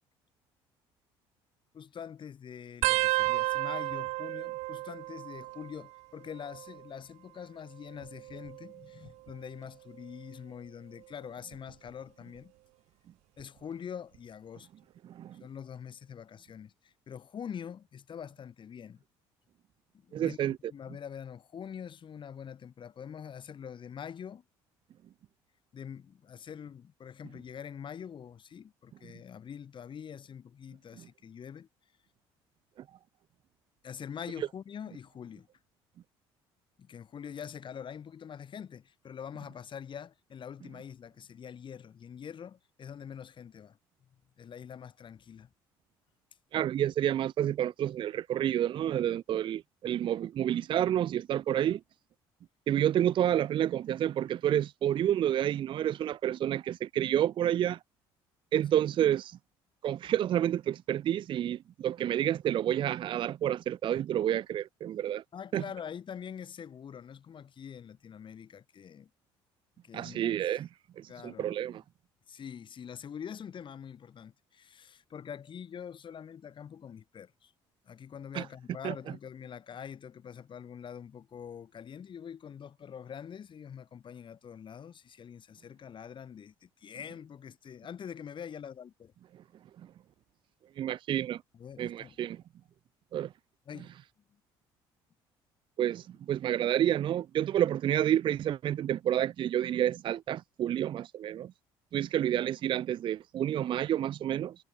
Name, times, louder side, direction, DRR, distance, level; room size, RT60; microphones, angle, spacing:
voice 1, 1.7-12.5 13.4-14.7 15.4-19.0 19.9-24.4 25.7-31.7 33.8-35.5 36.8-43.8 44.4-45.5 65.3-69.1 69.8-70.4 71.1-71.7 72.3-77.5 77.8-89.1 91.5-92.2 93.7-93.9, left 8 dB, 45° left, 3.5 m, -44 dB
sound 1, 2.8-6.0 6.3-6.9 7.9-9.4 10.0-10.3 11.5-11.9 13.4-13.5, right 20 dB, 75° right, 1.0 m, -33 dB
voice 2, 15.0-15.4 20.1-20.6 46.5-51.8 52.7-57.8 58.5-59.4 59.8-65.2 65.5-65.6 69.9-70.7 71.0-71.8 78.3-78.5 78.8-78.9 90.8-91.4 91.8-92.4 93.1-93.3 95.8-101.5 101.9-104.6, right 11 dB, 45° right, 0.4 m, -29 dB
supercardioid pair, 75°, 11 cm